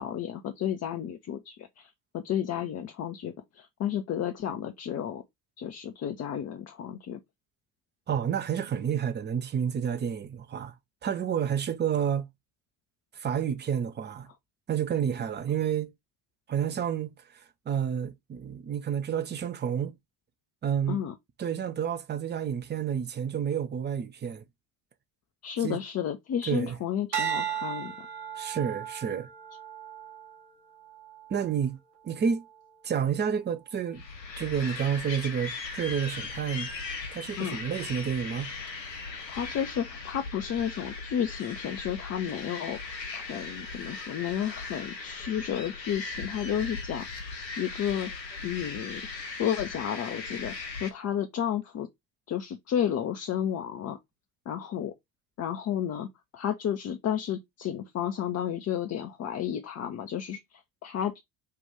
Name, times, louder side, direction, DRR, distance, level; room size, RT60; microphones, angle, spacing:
voice 1, 0.0-5.2 5.6-7.2 20.9-21.1 25.4-28.1 37.4-37.6 39.3-48.1 48.4-49.0 49.4-51.9 52.3-54.0 54.5-54.9 55.4-61.2, left 9 dB, 30° left, 0.7 m, -32 dB
voice 2, 8.1-10.7 11.0-12.3 13.1-14.3 14.7-15.9 16.5-17.1 17.7-19.9 20.6-21.0 21.4-24.4 25.6-25.8 26.5-26.8 28.4-29.3 31.3-31.8 32.0-32.4 32.8-34.0 34.4-36.7 37.1-38.5, right 8 dB, 20° right, 0.6 m, -29 dB
sound 1, 27.1-31.6 32.2-32.6, right 9 dB, 80° right, 1.1 m, -36 dB
sound 2, 33.9-50.9, left 4 dB, 85° left, 0.9 m, -38 dB
5.6 x 2.5 x 3.3 m
figure-of-eight pair, 55°, 49 cm